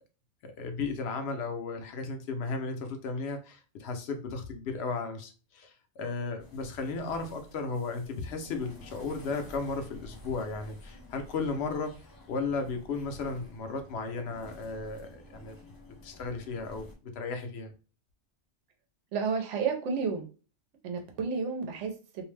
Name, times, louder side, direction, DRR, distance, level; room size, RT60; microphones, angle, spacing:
voice 1, 0.4-11.9 12.3-15.6 16.0-17.7, left 4 dB, 70° left, 6 dB, 0.8 m, -35 dB
sound 1, 6.4-16.9, left 1 dB, 30° left, 0.4 m, -51 dB
voice 2, 19.1-20.3 20.8-22.2, right 5 dB, 90° right, 3 dB, 0.9 m, -31 dB
2.6 x 2.0 x 3.2 m, 0.35 s
omnidirectional pair, 1.2 m